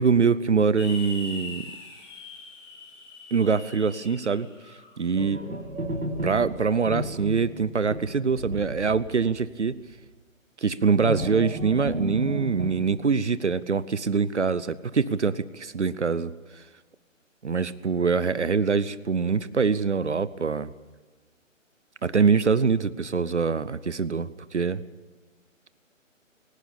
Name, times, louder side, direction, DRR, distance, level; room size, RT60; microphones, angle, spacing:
voice 1, 0.0-1.6 3.3-4.5 5.0-5.4 6.2-9.8 10.6-16.6 17.4-20.7 22.0-24.8, right 5 dB, 60° right, 17 dB, 0.9 m, -24 dB
sound 1, 0.8-5.0, left 3 dB, 15° left, 2.6 m, -42 dB
sound 2, 5.2-9.5 9.8-9.9 11.0-12.7, equal, 85° right, 3.2 m, -33 dB
22.0 x 18.5 x 8.8 m, 1.2 s
figure-of-eight pair, 140°, 39 cm